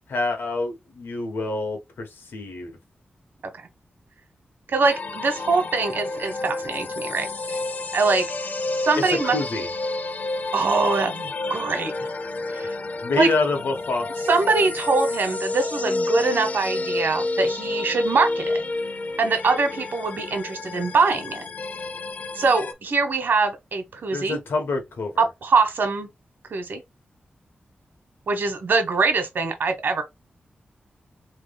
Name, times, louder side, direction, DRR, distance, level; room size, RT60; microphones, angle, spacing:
voice 1, 0.1-2.7 9.1-9.7 13.0-14.3 24.1-25.3, left 2 dB, 85° left, 1.3 m, -26 dB
voice 2, 4.7-7.6 7.9-8.3 8.8-9.4 10.5-11.9 12.5-12.7 13.2-13.3 14.3-18.6 19.2-21.5 22.3-24.4 25.2-26.1 26.5-26.8 28.3-30.0, right 4 dB, 70° right, 1.2 m, -23 dB
sound 1, 4.8-22.7, left 2 dB, 50° left, 0.5 m, -30 dB
3.8 x 3.3 x 3.5 m
wide cardioid pair, 155°, 4 cm